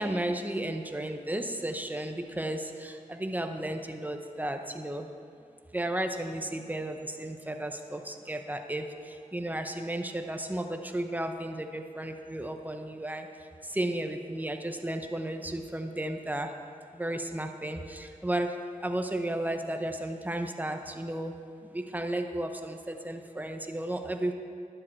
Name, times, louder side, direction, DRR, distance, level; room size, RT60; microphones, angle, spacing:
voice 1, 0.0-5.1 5.7-13.3 13.7-16.5 16.9-18.5 18.8-21.3 21.7-24.3, right 1 dB, 10° right, 5 dB, 0.8 m, -33 dB
12.0 x 10.0 x 4.6 m, 2.4 s
wide cardioid pair, 85°, 14 cm